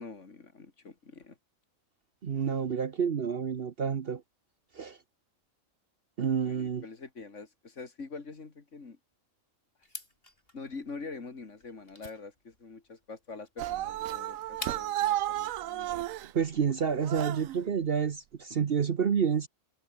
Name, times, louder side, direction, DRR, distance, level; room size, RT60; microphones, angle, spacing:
voice 1, 0.0-1.4 6.4-9.0 10.5-16.1, left 4 dB, 55° left, 2.7 m, -45 dB
voice 2, 2.2-4.2 4.8-5.0 6.2-6.8 16.3-19.5, right 7 dB, 50° right, 1.0 m, -29 dB
sound 1, 9.8-15.1, left 1 dB, 40° left, 7.4 m, -47 dB
sound 2, 13.6-16.3 17.0-17.6, right 13 dB, 75° right, 1.0 m, -32 dB
omnidirectional pair, 1.5 m